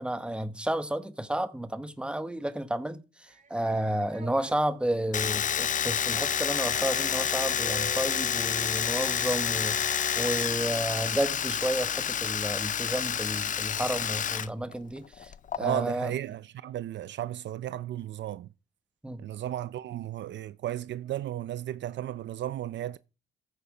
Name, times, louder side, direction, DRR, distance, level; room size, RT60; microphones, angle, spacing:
voice 1, 0.0-15.3 15.6-16.1 19.0-19.3, right 1 dB, 5° right, 1.2 m, -31 dB
sound 1, 3.3-4.5 6.7-8.3, right 3 dB, 40° right, 2.1 m, -45 dB
Domestic sounds home sounds, 5.1-14.5 14.7-15.6, left 8 dB, 40° left, 0.5 m, -29 dB
voice 2, 15.5-18.5 19.2-23.0, right 12 dB, 65° right, 0.6 m, -34 dB
14.5 x 7.0 x 5.0 m
cardioid pair, 90°, 20 cm